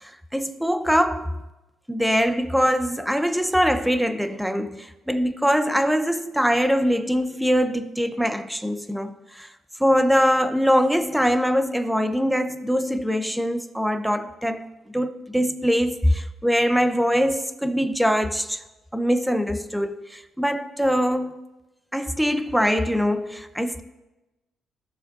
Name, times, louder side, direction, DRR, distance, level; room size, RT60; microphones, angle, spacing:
voice 1, 0.0-1.4 1.9-9.5 9.8-18.6 18.9-21.4 21.9-23.8, equal, ahead, 0.6 m, -23 dB
16.5 x 6.3 x 2.5 m
cardioid pair, 90°, 0 cm